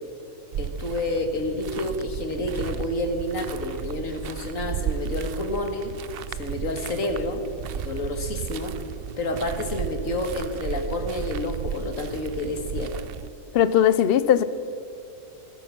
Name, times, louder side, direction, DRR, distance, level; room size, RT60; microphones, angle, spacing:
sound 1, 0.5-13.3, right 8 dB, 60° right, 0.6 m, -34 dB
voice 1, 0.6-5.9 6.3-7.4 7.7-8.7 9.2-12.9, left 2 dB, 80° left, 5 dB, 2.1 m, -29 dB
voice 2, 13.5-14.4, left 10 dB, 60° left, 15 dB, 0.7 m, -18 dB
15.0 x 14.0 x 5.9 m, 2.7 s
omnidirectional pair, 1.4 m